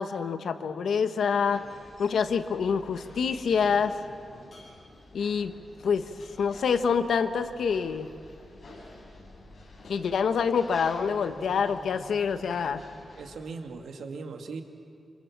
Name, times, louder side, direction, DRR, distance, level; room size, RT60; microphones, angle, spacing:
voice 1, 0.0-1.6 2.0-3.9 5.1-5.5 5.8-6.0 6.4-8.1 9.8-12.8, left 6 dB, 85° left, 9 dB, 1.3 m, -26 dB
sound 1, 1.3-13.4, left 2 dB, 45° left, 7.9 m, -50 dB
voice 2, 13.2-14.6, right 4 dB, 85° right, 4 dB, 2.3 m, -39 dB
27.5 x 26.5 x 7.5 m, 2.3 s
wide cardioid pair, 120°, 0 cm